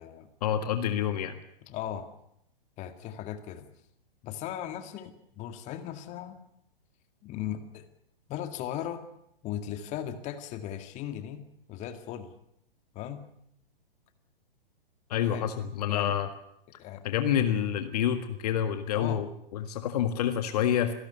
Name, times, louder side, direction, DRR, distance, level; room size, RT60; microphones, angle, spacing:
voice 1, 0.4-1.4 15.1-16.3 16.7-20.9, left 9 dB, 40° left, 8 dB, 1.7 m, -28 dB
voice 2, 1.7-2.1 2.8-3.7 4.2-6.4 7.2-7.9 8.3-9.0 9.4-11.4 11.7-12.3 12.9-13.2 15.2-15.5 15.9-16.2 16.8-17.0 18.9-19.2, left 10 dB, 25° left, 8 dB, 1.9 m, -37 dB
26.5 x 17.5 x 6.8 m, 0.74 s
figure-of-eight pair, 115°, 29 cm